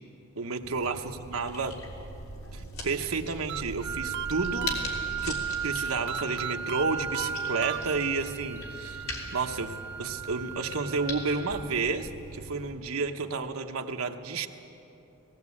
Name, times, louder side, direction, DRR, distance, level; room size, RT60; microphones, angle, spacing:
voice 1, 0.4-1.8 2.5-4.7 5.2-9.0 9.3-14.5, right 4 dB, 80° right, 6 dB, 1.1 m, -31 dB
sound 1, 0.6-12.7, left 1 dB, 80° left, 3.3 m, -41 dB
sound 2, 3.5-5.3 6.1-8.3, right 10 dB, 50° right, 0.5 m, -38 dB
Wind instrument woodwind instrument, 3.8-11.8, right 6 dB, 10° right, 0.8 m, -36 dB
18.0 x 17.0 x 8.5 m, 3.0 s
head